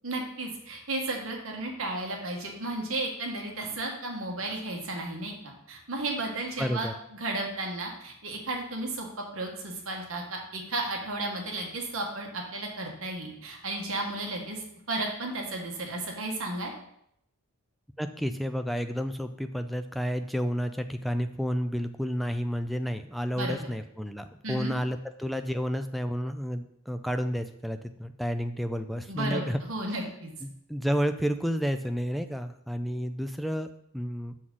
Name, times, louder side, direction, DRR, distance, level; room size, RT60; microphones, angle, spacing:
voice 1, 0.0-9.1 9.3-14.6 14.9-16.7 23.4-23.6 24.4-24.7 29.1-30.3, right 2 dB, 65° right, 1 dB, 1.4 m, -33 dB
voice 2, 6.6-6.9 18.0-29.6 30.4-33.7 33.9-34.3, equal, ahead, 8 dB, 0.3 m, -31 dB
6.2 x 6.0 x 3.8 m, 0.74 s
head